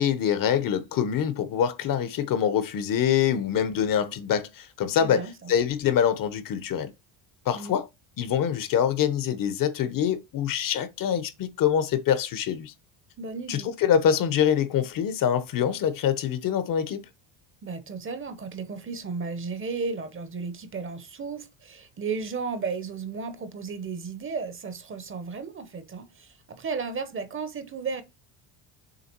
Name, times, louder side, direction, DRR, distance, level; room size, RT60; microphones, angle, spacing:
voice 1, 0.0-6.9 7.4-7.9 8.2-12.7 13.5-17.0, left 9 dB, 50° left, 1.0 m, -25 dB
voice 2, 5.0-5.5 7.5-7.8 13.2-13.7 17.6-28.0, right 5 dB, 30° right, 0.9 m, -34 dB
6.9 x 3.4 x 4.5 m
cardioid pair, 130°, 44 cm